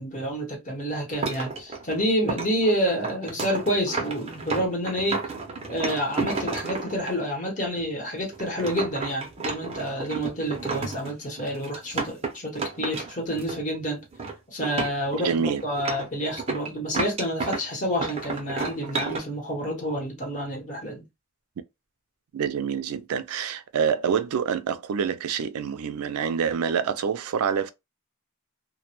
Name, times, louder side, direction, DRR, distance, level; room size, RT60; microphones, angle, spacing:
voice 1, 0.0-5.2 5.7-14.0 14.5-21.0, equal, 35° left, 1.0 m, -28 dB
sound 1, 1.1-7.1 7.8-7.9 8.3-13.8 14.0-14.3 14.6-17.7 18.0-19.2, right 3 dB, 30° right, 0.6 m, -32 dB
voice 2, 15.1-15.6 22.3-27.7, right 7 dB, 90° right, 0.4 m, -26 dB
2.1 x 2.1 x 2.9 m
head